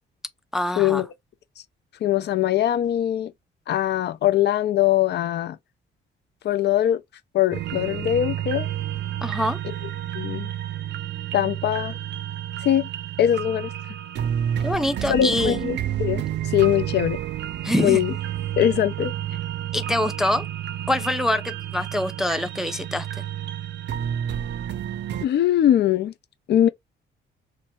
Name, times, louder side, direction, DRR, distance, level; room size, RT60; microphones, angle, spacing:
voice 1, 0.5-1.0 9.2-9.6 14.6-15.7 17.6-18.0 19.7-20.5 20.9-23.2, left 1 dB, ahead, 0.3 m, -25 dB
voice 2, 2.0-3.3 3.7-5.6 6.4-7.0 7.3-8.7 10.1-10.5 11.3-12.0 12.6-12.9 13.2-13.7 15.1-16.2 16.5-17.2 17.8-18.1 18.6-19.1 25.2-26.1 26.5-26.7, left 11 dB, 60° left, 0.4 m, -21 dB
sound 1, 7.5-25.3, right 11 dB, 65° right, 0.5 m, -30 dB
2.9 x 2.1 x 2.6 m
cardioid pair, 90°, 20 cm